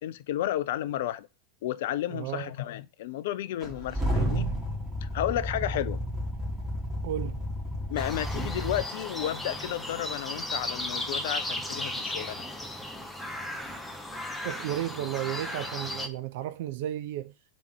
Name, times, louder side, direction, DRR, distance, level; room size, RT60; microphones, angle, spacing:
voice 1, 0.0-1.3 1.6-4.5 5.0-6.0 7.9-12.4, left 12 dB, 55° left, 0.3 m, -32 dB
voice 2, 2.1-2.5 7.0-7.4 14.4-17.3, right 12 dB, 50° right, 0.3 m, -33 dB
sound 1, 3.6-8.8, equal, 10° right, 1.8 m, -31 dB
sound 2, 8.0-16.1, left 1 dB, 5° left, 0.6 m, -35 dB
3.4 x 3.0 x 4.7 m
figure-of-eight pair, 90°, 0 cm